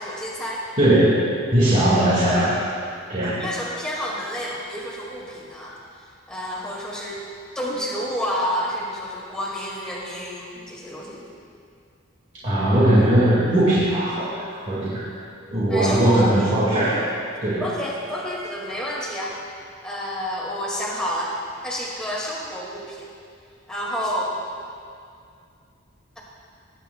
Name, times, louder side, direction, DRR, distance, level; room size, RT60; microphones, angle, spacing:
voice 1, 0.0-0.6 3.3-5.8 6.3-7.2 7.5-11.2 15.7-16.5 17.6-19.4 19.8-21.3 21.6-23.1 23.7-24.4, equal, 5° left, -5 dB, 2.0 m, -29 dB
voice 2, 0.8-2.6 3.1-3.4 12.4-15.1 15.5-17.0 17.4-17.7, right 1 dB, 40° right, -9 dB, 1.9 m, -19 dB
19.0 x 9.3 x 2.2 m, 2.3 s
head